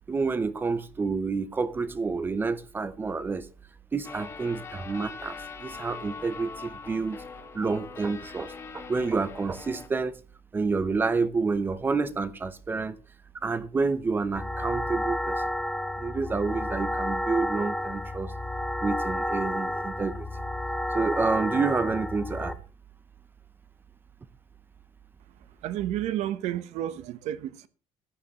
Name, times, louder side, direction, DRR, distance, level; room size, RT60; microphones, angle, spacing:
voice 1, 0.1-3.5 3.9-7.2 7.5-10.2 10.5-13.0 13.4-15.4 16.0-18.3 18.8-20.3 20.9-22.6, right 4 dB, 20° right, 0.7 m, -29 dB
sound 1, 4.0-9.9, left 5 dB, 25° left, 1.6 m, -42 dB
sound 2, 14.4-22.5, left 1 dB, 5° left, 0.9 m, -31 dB
voice 2, 25.6-27.7, right 12 dB, 80° right, 1.0 m, -31 dB
15.5 x 10.0 x 3.0 m
cardioid pair, 175°, 11 cm